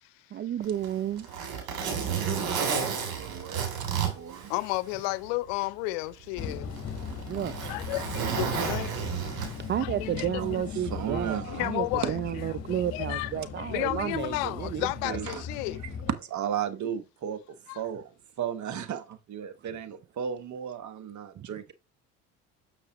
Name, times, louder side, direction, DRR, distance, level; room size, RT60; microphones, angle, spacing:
voice 1, 0.3-1.3 7.3-7.6 9.7-15.3, right 10 dB, 30° right, 0.4 m, -32 dB
Zipper (clothing), 0.6-5.1 5.5-5.6 6.4-9.8 11.0-11.2, right 7 dB, 65° right, 3.3 m, -32 dB
voice 2, 1.7-4.5 7.9-8.0 10.2-11.7 12.0-12.1 15.0-15.4 15.8-18.1 18.4-21.7, right 8 dB, 50° right, 1.1 m, -36 dB
voice 3, 4.5-6.8 7.7-8.9 9.6-10.3 11.1-12.1 12.7-15.8 17.7-17.8, left 19 dB, 75° left, 0.7 m, -33 dB
sound 1, 6.4-16.1, left 6 dB, 40° left, 1.4 m, -38 dB
6.7 x 6.0 x 3.0 m
hypercardioid pair, 75°, 38 cm